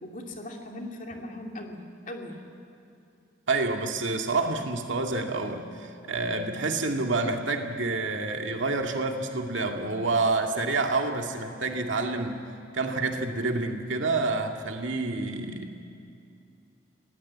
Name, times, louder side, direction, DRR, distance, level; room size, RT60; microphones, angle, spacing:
voice 1, 0.0-2.4 11.6-11.7, left 1 dB, 40° left, 1 dB, 2.8 m, -39 dB
voice 2, 3.5-12.4 12.7-15.7, right 3 dB, 70° right, 3 dB, 2.2 m, -28 dB
27.5 x 18.5 x 8.7 m, 2.5 s
head